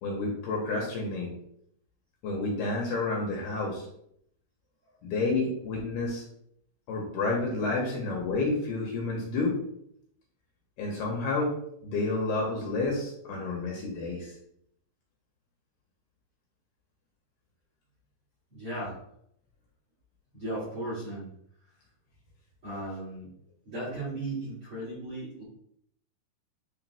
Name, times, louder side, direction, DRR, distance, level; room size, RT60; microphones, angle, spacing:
voice 1, 0.0-1.3 2.2-3.9 5.0-6.2 6.9-9.6 10.8-11.5 11.8-14.3, left 3 dB, 70° left, -1 dB, 2.6 m, -30 dB
voice 2, 18.5-19.0 20.3-21.3 22.6-23.3 23.6-25.4, right 1 dB, 45° right, -7 dB, 2.0 m, -36 dB
10.0 x 3.3 x 3.5 m, 0.71 s
omnidirectional pair, 5.5 m